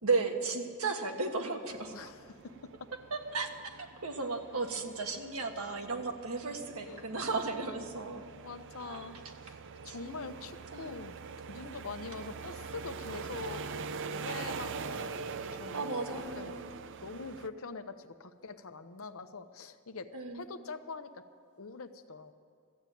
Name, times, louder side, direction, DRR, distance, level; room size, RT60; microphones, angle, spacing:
voice 1, 0.0-1.9 3.1-8.2 8.8-9.1 9.8-10.2 10.7-11.0 15.7-16.7 20.1-20.5, right 3 dB, 85° right, 4 dB, 1.4 m, -35 dB
sound 1, 1.7-17.5, right 5 dB, 60° right, 0.5 m, -44 dB
voice 2, 1.9-2.4 6.9-7.1 8.4-9.6 9.8-11.1 11.5-16.6 17.0-20.1 20.3-21.2 21.6-22.3, left 4 dB, 70° left, 9 dB, 0.8 m, -44 dB
14.0 x 8.5 x 9.2 m, 2.4 s
head